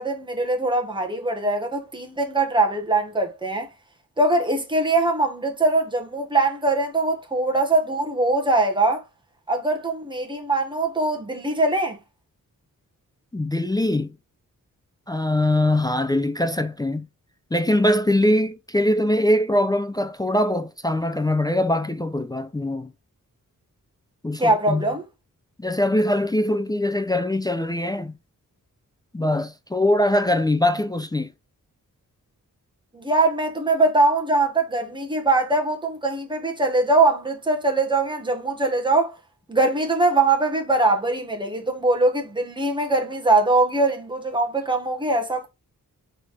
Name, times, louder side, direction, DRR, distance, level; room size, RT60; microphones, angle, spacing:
voice 1, 0.0-3.7 4.2-9.0 9.5-12.0 24.4-25.0 32.9-39.2 39.5-45.5, right 2 dB, 15° right, 1.0 m, -22 dB
voice 2, 13.3-14.1 15.1-17.1 17.5-22.9 24.2-24.8 25.6-28.1 29.1-31.3, left 1 dB, 15° left, 0.3 m, -22 dB
4.0 x 3.3 x 3.3 m
wide cardioid pair, 125°, 34 cm